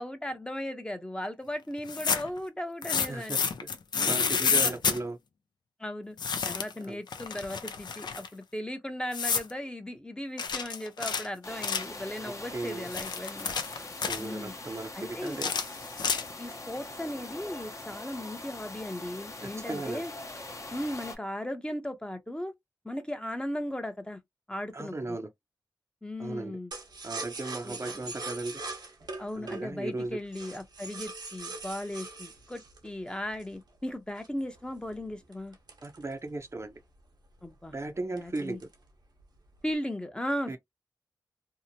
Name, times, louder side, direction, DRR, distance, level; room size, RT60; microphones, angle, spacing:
voice 1, 0.0-3.5 4.0-4.7 5.8-6.2 6.4-13.5 14.2-14.5 14.9-15.4 16.4-20.1 20.7-22.5 22.8-24.2 24.5-25.2 26.0-26.7 27.6-27.8 29.2-35.5 37.4-37.7 38.1-38.6 39.6-40.6, left 1 dB, 15° left, 0.7 m, -37 dB
sound 1, 1.8-2.4 2.8-5.0 6.2-6.8 7.1-8.3 9.1-9.5 10.4-12.0 12.7-14.3 15.3-16.5, left 6 dB, 80° left, 0.5 m, -29 dB
voice 2, 3.1-3.4 4.0-5.2 6.8-7.0 12.2-12.9 14.0-15.5 19.4-20.1 24.7-25.3 26.2-26.6 27.0-28.6 29.3-30.2 35.8-36.8 37.7-38.7 40.5-40.6, right 2 dB, 40° right, 0.6 m, -36 dB
sound 2, 11.4-21.2, left 2 dB, 45° left, 0.8 m, -42 dB
sound 3, 26.7-33.6 34.2-36.6 37.0-37.1 37.4-37.7 38.2-38.9 39.2-39.7, right 3 dB, 75° right, 0.9 m, -42 dB
2.7 x 2.1 x 2.7 m
cardioid pair, 55°, 7 cm